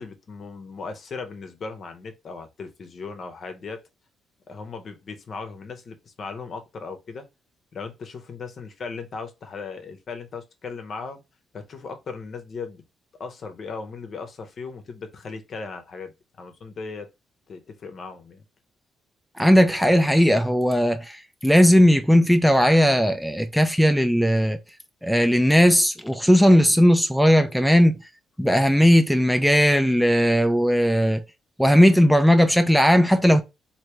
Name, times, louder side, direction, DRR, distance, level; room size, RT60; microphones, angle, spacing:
voice 1, 0.0-3.8 4.5-7.3 7.7-11.2 11.5-12.8 13.2-17.1 17.5-18.4, left 4 dB, 50° left, 0.8 m, -37 dB
voice 2, 19.4-24.6 25.0-28.0 28.4-31.2 31.6-33.4, equal, ahead, 0.5 m, -17 dB
3.3 x 2.7 x 3.0 m
cardioid pair, 85°, 0 cm